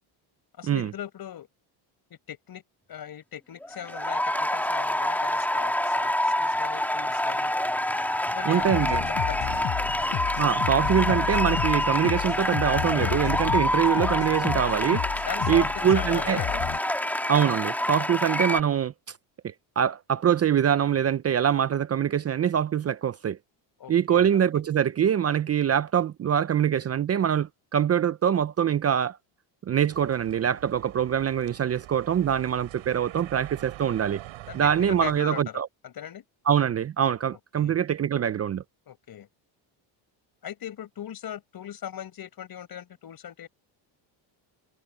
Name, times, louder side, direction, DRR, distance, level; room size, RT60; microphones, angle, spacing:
voice 1, 0.6-1.5 2.1-2.6 2.9-7.5 8.3-8.8 9.3-9.5 15.2-16.6 18.1-18.2 23.8-24.4 34.4-35.5 35.8-36.2 37.6-37.8 38.9-39.3 40.4-43.5, left 10 dB, 50° left, 6.2 m, -39 dB
sound 1, 3.6-18.6, left 1 dB, 5° left, 2.6 m, -27 dB
voice 2, 8.4-9.0 10.4-15.0 15.5-16.4 17.3-18.9 19.4-23.4 23.9-29.2 29.7-34.2 34.5-35.7 36.5-38.6, right 9 dB, 30° right, 0.6 m, -24 dB
sound 2, 8.6-16.8, left 16 dB, 75° left, 6.5 m, -32 dB
sound 3, 29.9-35.2, right 17 dB, 80° right, 4.2 m, -44 dB
cardioid pair, 110°, 47 cm